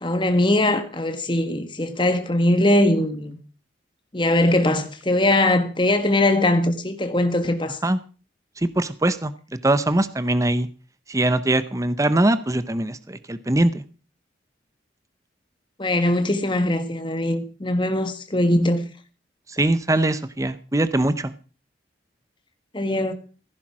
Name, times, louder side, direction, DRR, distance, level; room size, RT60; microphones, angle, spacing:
voice 1, 0.0-3.4 4.1-7.8 15.8-18.9 22.7-23.1, left 1 dB, 25° left, 1.6 m, -21 dB
voice 2, 8.6-10.7 11.1-13.8 19.6-21.3, right 1 dB, 15° right, 0.7 m, -22 dB
15.5 x 10.5 x 6.1 m
head